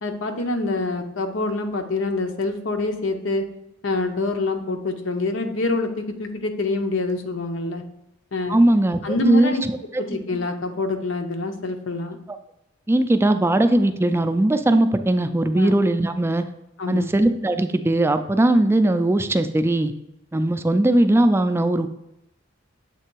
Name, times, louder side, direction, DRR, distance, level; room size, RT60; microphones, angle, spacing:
voice 1, 0.0-3.5 3.8-7.8 8.3-8.6 9.0-9.6 10.0-12.2 15.6-15.8 16.8-17.1, left 2 dB, 80° left, 5 dB, 0.7 m, -26 dB
voice 2, 8.5-9.5 12.9-16.5 16.9-19.9 20.3-21.9, right 1 dB, 15° right, 9 dB, 0.3 m, -19 dB
7.5 x 3.3 x 4.5 m, 0.84 s
head